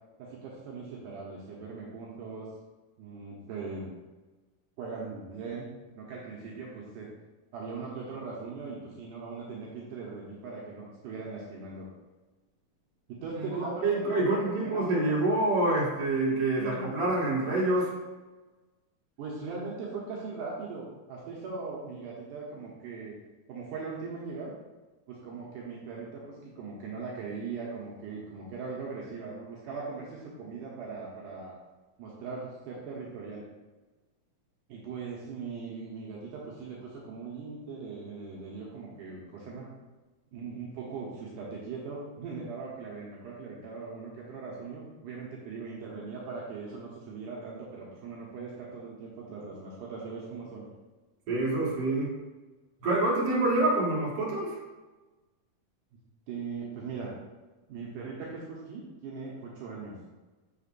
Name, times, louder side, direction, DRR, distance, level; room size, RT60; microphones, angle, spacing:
voice 1, 0.2-2.5 3.0-3.9 4.8-5.7 6.0-7.1 7.5-11.9 13.1-15.1 16.6-16.8 19.2-23.1 23.5-24.5 25.1-31.6 32.0-33.4 34.7-39.7 40.3-50.7 56.3-57.1 57.7-60.0, right 4 dB, 75° right, -5 dB, 2.4 m, -40 dB
voice 2, 13.8-17.9 51.3-52.1 52.8-54.6, right 2 dB, 50° right, -6 dB, 2.4 m, -26 dB
6.8 x 5.8 x 2.5 m, 1.2 s
omnidirectional pair, 3.8 m